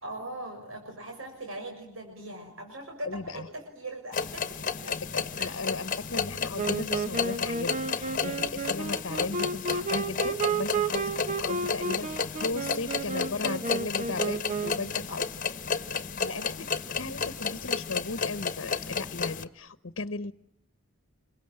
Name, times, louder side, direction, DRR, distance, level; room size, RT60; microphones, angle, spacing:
voice 1, 0.0-4.8 5.4-5.6 16.1-16.5, right 1 dB, 80° right, 2 dB, 6.6 m, -40 dB
voice 2, 3.0-3.5 4.9-15.3 16.2-16.7 17.0-20.3, left 3 dB, 70° left, 13 dB, 1.0 m, -36 dB
sound 1, 4.1-19.4, left 5 dB, 40° left, 1.3 m, -32 dB
Wind instrument woodwind instrument, 6.6-15.0, right 4 dB, 35° right, 1.1 m, -32 dB
27.5 x 23.0 x 8.9 m, 0.70 s
head